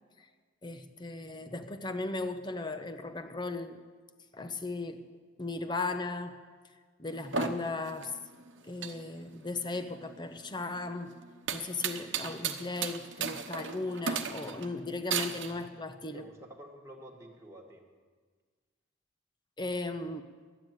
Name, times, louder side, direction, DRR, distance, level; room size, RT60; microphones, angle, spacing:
voice 1, 0.6-3.8 4.3-5.0 5.4-6.4 7.0-8.1 8.6-11.2 11.5-16.2 19.6-20.2, left 3 dB, 25° left, 8 dB, 0.8 m, -36 dB
sound 1, 7.1-15.5, right 6 dB, 70° right, 0.9 m, -36 dB
voice 2, 15.3-15.8 16.1-17.8, equal, 15° right, -1 dB, 1.6 m, -51 dB
12.0 x 9.3 x 9.1 m, 1.5 s
head